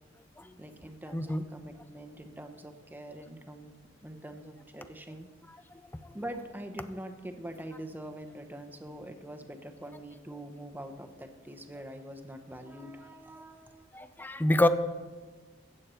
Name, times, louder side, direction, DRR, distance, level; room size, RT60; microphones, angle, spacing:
voice 1, 0.6-3.7 4.0-5.3 6.1-14.0, right 1 dB, 10° right, 6 dB, 0.9 m, -44 dB
voice 2, 1.1-1.4 13.9-14.7, left 1 dB, 10° left, 11 dB, 0.5 m, -26 dB
14.5 x 8.8 x 4.4 m, 1.3 s
head